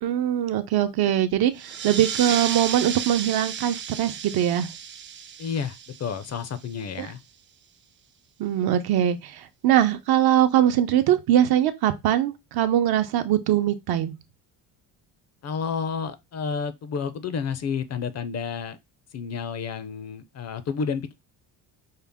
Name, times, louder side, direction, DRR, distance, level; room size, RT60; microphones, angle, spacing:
voice 1, 0.0-4.7 7.0-7.1 8.4-14.1, right 11 dB, 60° right, 0.7 m, -22 dB
sound 1, 1.5-6.8, right 8 dB, 30° right, 0.4 m, -33 dB
voice 2, 5.4-7.2 15.4-18.8 19.1-21.1, left 6 dB, 40° left, 0.5 m, -30 dB
5.5 x 2.0 x 3.5 m
cardioid pair, 110°, 42 cm